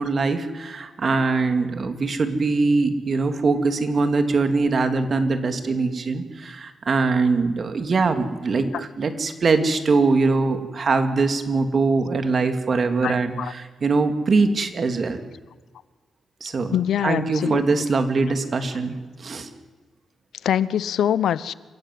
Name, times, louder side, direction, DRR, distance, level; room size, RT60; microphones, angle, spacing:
voice 1, 0.0-15.2 16.4-19.5, right 3 dB, 45° right, 2.4 m, -22 dB
voice 2, 13.0-13.5 16.7-17.6 20.4-21.5, left 10 dB, 80° left, 0.8 m, -23 dB
27.0 x 15.5 x 9.3 m
cardioid pair, 125°, 0 cm